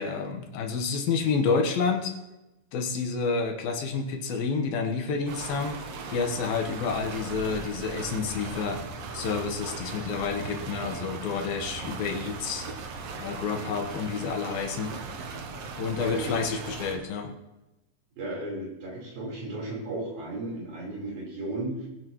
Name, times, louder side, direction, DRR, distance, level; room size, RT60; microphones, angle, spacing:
voice 1, 0.0-2.1 2.7-5.8 6.1-8.8 9.1-12.7 13.2-14.9 15.8-17.3, left 5 dB, 80° left, 4 dB, 3.1 m, -29 dB
sound 1, 5.3-17.0, right 4 dB, 65° right, 1.6 m, -38 dB
voice 2, 16.0-16.4 18.2-21.9, right 2 dB, 85° right, -4 dB, 6.0 m, -35 dB
21.0 x 9.5 x 3.1 m, 0.96 s
omnidirectional pair, 4.1 m